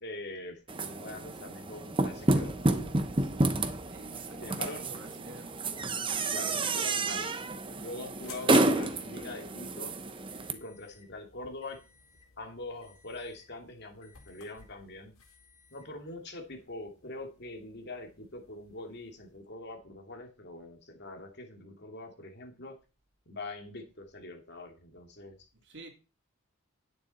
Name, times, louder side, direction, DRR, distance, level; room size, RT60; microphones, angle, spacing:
voice 1, 0.0-3.0 4.4-4.8 6.3-7.3 7.8-10.0 10.5-11.8 12.4-15.1 15.7-22.8 23.3-25.5, left 2 dB, 50° left, 3 dB, 2.4 m, -43 dB
sound 1, 0.7-10.5, right 2 dB, 25° right, 0.9 m, -30 dB
voice 2, 3.9-5.5 6.9-7.2 8.4-8.6 25.6-25.9, right 1 dB, 55° right, 2 dB, 3.0 m, -50 dB
sound 2, 7.0-19.5, left 6 dB, 80° left, 4.2 m, -54 dB
11.0 x 9.3 x 4.2 m, 0.32 s
head